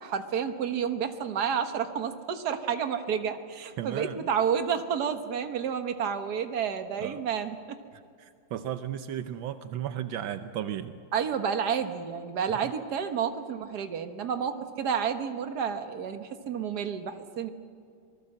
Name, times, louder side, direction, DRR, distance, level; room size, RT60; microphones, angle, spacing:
voice 1, 0.0-7.6 11.1-17.5, right 7 dB, 60° right, 8 dB, 1.8 m, -30 dB
voice 2, 3.8-4.2 7.0-7.2 8.2-11.0, right 10 dB, 80° right, 9 dB, 1.5 m, -34 dB
26.5 x 19.5 x 7.8 m, 2.3 s
omnidirectional pair, 2.1 m